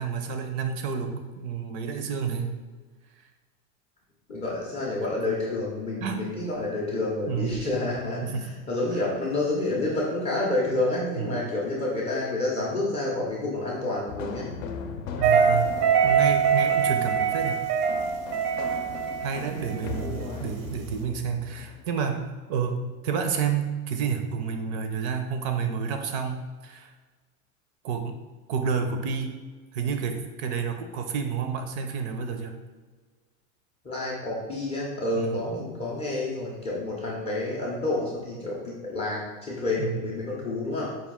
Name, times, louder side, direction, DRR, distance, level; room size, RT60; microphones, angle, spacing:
voice 1, 0.0-2.6 6.0-6.4 7.3-7.7 8.2-8.5 11.2-11.5 15.2-17.6 19.2-26.9 27.8-29.3 29.7-32.6 35.2-35.4 39.8-40.0, right 6 dB, 50° right, 6 dB, 0.5 m, -30 dB
voice 2, 4.3-14.5 19.7-20.4 33.8-41.0, left 2 dB, 15° left, -5 dB, 0.4 m, -29 dB
sound 1, 14.1-21.9, left 5 dB, 70° left, 0.6 m, -39 dB
sound 2, 15.2-20.2, right 6 dB, 85° right, 0.8 m, -23 dB
4.8 x 2.3 x 3.5 m, 1.4 s
supercardioid pair, 145°, 44 cm